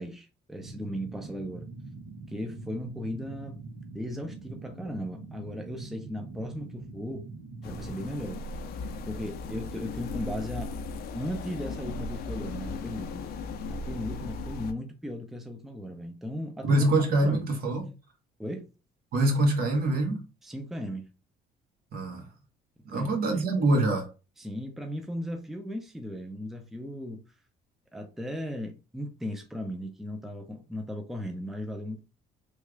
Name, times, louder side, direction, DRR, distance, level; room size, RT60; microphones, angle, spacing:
voice 1, 0.0-1.7 2.3-3.6 3.9-7.3 7.6-8.4 9.1-10.8 11.1-13.2 13.7-16.9 17.2-17.5 18.4-18.7 20.4-21.1 22.9-23.4 24.4-27.2 27.9-32.0, equal, ahead, 0.5 m, -36 dB
sound 1, 0.6-8.0, right 3 dB, 80° right, 1.0 m, -43 dB
sound 2, 7.6-14.7, left 3 dB, 65° left, 0.5 m, -37 dB
voice 2, 16.6-17.9 19.1-20.2 21.9-22.2 22.9-24.1, right 2 dB, 65° right, 1.3 m, -24 dB
3.3 x 2.4 x 3.1 m
cardioid pair, 110°, 17 cm